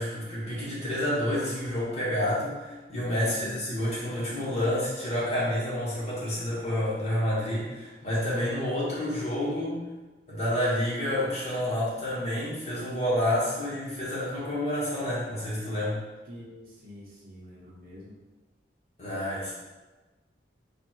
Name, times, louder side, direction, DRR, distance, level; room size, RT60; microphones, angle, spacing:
voice 1, 0.0-9.9 10.3-16.0 19.0-19.5, left 1 dB, 35° left, -8 dB, 1.4 m, -29 dB
voice 2, 3.2-3.6 16.2-18.2, left 1 dB, 50° right, -6 dB, 0.9 m, -46 dB
3.6 x 2.4 x 4.4 m, 1.2 s
head